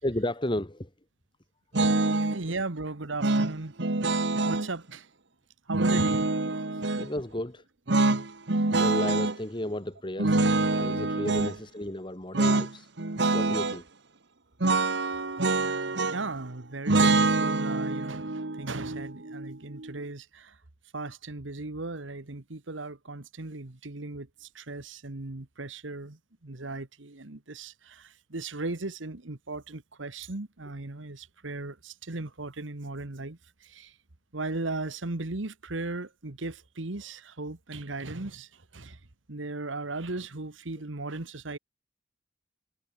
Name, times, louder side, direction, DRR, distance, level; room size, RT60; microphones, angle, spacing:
voice 1, 0.0-0.9 5.9-6.0 6.9-7.6 8.8-12.9 13.3-13.8, left 1 dB, 25° left, 2.2 m, -33 dB
sound 1, 1.7-2.4 3.2-4.7 5.7-7.1 7.9-9.4 10.2-11.5 12.3-12.7 13.0-13.8 14.6-16.4 16.9-19.9, right 2 dB, 65° right, 1.4 m, -25 dB
voice 2, 2.1-3.7 4.4-5.1 5.7-6.5 16.1-20.6 20.9-33.9 34.3-39.0 39.3-41.6, right 2 dB, 90° right, 1.6 m, -37 dB
head